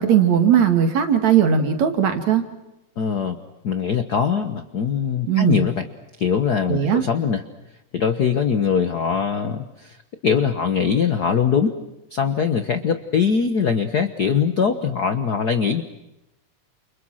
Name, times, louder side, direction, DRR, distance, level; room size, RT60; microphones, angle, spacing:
voice 1, 0.0-2.4 5.3-5.6 6.7-7.0, right 8 dB, 65° right, 6 dB, 3.5 m, -18 dB
voice 2, 3.0-3.4 3.6-5.9 6.2-7.4 7.9-10.0 10.2-11.8 12.1-15.8, left 6 dB, 55° left, 8 dB, 1.1 m, -22 dB
30.0 x 29.5 x 6.4 m, 0.95 s
omnidirectional pair, 3.5 m